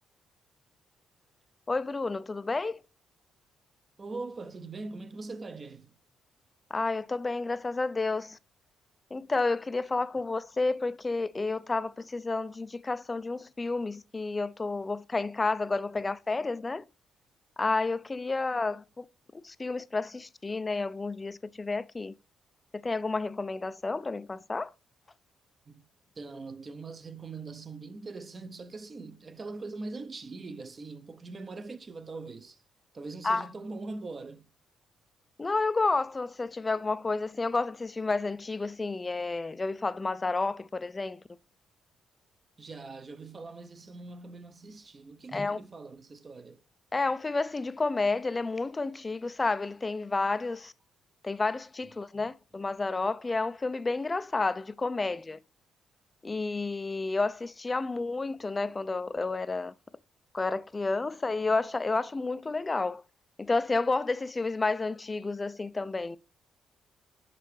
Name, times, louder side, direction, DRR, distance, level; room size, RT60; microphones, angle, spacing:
voice 1, 1.7-2.8 6.7-8.4 9.1-16.8 17.6-19.1 19.3-22.1 22.8-24.7 33.2-33.5 35.4-41.2 45.3-45.6 46.9-50.7 51.2-55.4 56.2-59.7 60.3-63.0 63.4-66.2, left 3 dB, 25° left, 0.4 m, -30 dB
voice 2, 4.0-6.0 25.7-25.8 26.2-32.6 32.9-34.5 42.6-46.6, right 3 dB, 35° right, 0.7 m, -42 dB
6.6 x 5.2 x 3.1 m
cardioid pair, 90°, 0 cm